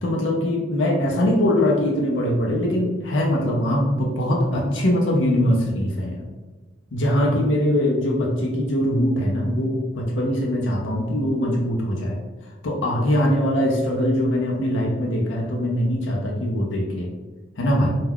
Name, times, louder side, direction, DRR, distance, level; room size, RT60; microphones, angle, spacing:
voice 1, 0.0-6.2 6.9-12.2 12.6-17.1 17.6-17.9, left 1 dB, 80° left, -2 dB, 0.5 m, -22 dB
2.3 x 2.2 x 3.4 m, 1.2 s
head